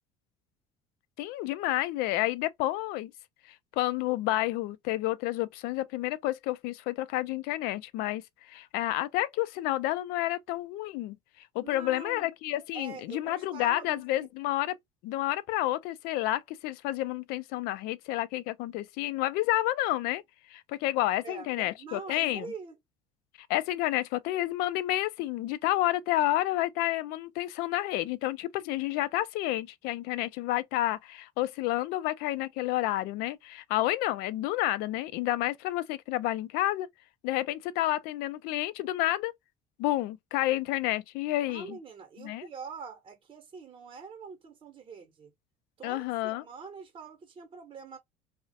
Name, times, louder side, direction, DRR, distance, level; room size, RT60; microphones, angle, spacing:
voice 1, 1.2-3.1 3.8-11.2 11.5-14.8 15.0-20.2 20.5-22.5 23.4-36.9 37.2-39.3 39.8-41.8 42.2-42.5 45.8-46.4, left 15 dB, 70° left, 0.4 m, -30 dB
voice 2, 11.6-12.3 12.7-14.3 21.2-22.7 41.5-45.3 45.8-48.0, right 5 dB, 35° right, 0.8 m, -44 dB
2.3 x 2.1 x 2.6 m
supercardioid pair, 85°, 16 cm